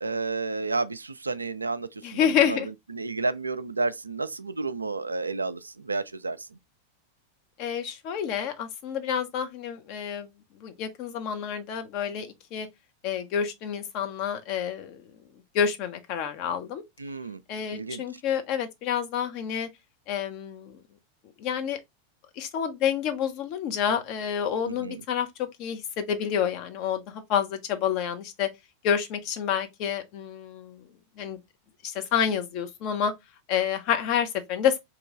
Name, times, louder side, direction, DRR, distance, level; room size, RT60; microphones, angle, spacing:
voice 1, 0.0-2.6 2.9-6.5 17.0-17.4 17.7-18.0 24.7-25.0, right 3 dB, 80° right, 0.3 m, -31 dB
voice 2, 2.0-2.7 7.6-12.7 13.0-15.0 15.5-16.8 17.5-19.7 20.1-20.8 21.4-21.8 22.4-28.5 28.8-30.9 31.2-31.4 31.8-33.1 33.5-34.8, left 8 dB, 40° left, 0.7 m, -28 dB
3.0 x 3.0 x 3.6 m
figure-of-eight pair, 90°, 0 cm